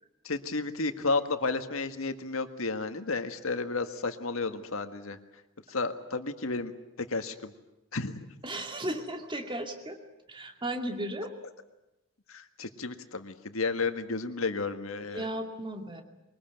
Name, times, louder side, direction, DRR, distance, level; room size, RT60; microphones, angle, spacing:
voice 1, 0.2-5.2 5.7-6.7 7.0-7.5 7.9-8.2 12.3-15.3, left 3 dB, 80° left, 9 dB, 1.7 m, -32 dB
voice 2, 8.4-10.0 10.3-11.3 15.1-16.0, right 1 dB, 25° right, 4 dB, 2.5 m, -35 dB
23.0 x 20.5 x 9.2 m, 0.98 s
head